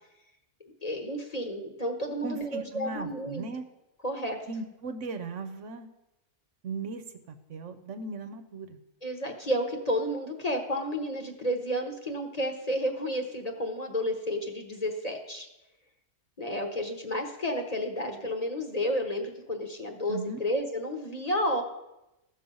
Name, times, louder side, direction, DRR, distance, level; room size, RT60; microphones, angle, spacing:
voice 1, 0.8-3.4 4.0-4.4 9.0-15.5 16.4-21.6, equal, 35° left, 3 dB, 1.1 m, -31 dB
voice 2, 2.2-3.6 4.5-5.9 6.6-8.8 20.1-20.4, right 3 dB, 70° right, 9 dB, 1.2 m, -37 dB
14.5 x 6.0 x 5.4 m, 0.94 s
omnidirectional pair, 1.3 m